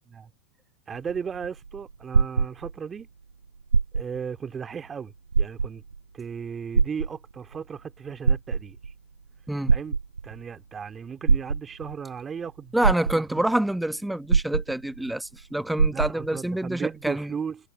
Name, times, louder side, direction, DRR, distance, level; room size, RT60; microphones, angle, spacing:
voice 1, 0.9-3.1 3.9-5.8 6.1-8.8 9.7-10.0 10.2-13.4 15.9-17.6, right 6 dB, 20° right, 2.4 m, -36 dB
sound 1, 0.9-3.0 3.6-4.3 4.7-4.8 5.3-6.0 6.7-7.6 8.1-8.9 9.7-10.4 11.3-12.0 12.5-12.6 12.8-13.5 14.3-15.1 15.4-15.5 15.8-16.4 17.1-17.2, right 5 dB, 75° right, 0.4 m, -23 dB
voice 2, 12.7-17.3, right 1 dB, 5° right, 1.4 m, -27 dB
figure-of-eight pair, 90°, 0 cm